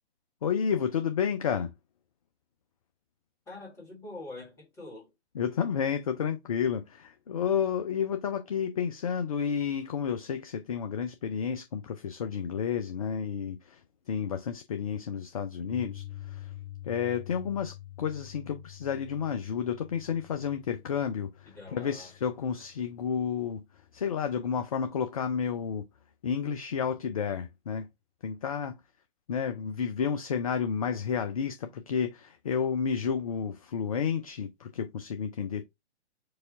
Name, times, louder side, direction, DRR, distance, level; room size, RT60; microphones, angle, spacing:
voice 1, 0.4-1.7 5.3-13.8 14.1-16.5 16.8-23.6 23.9-25.9 26.2-27.9 28.2-28.8 29.3-35.6, left 7 dB, 35° left, 0.4 m, -31 dB
voice 2, 3.5-5.1 21.5-22.1, left 2 dB, 10° left, 1.5 m, -44 dB
Piano, 15.7-23.8, left 14 dB, 65° left, 1.1 m, -47 dB
4.7 x 2.3 x 3.8 m
figure-of-eight pair, 125°, 34 cm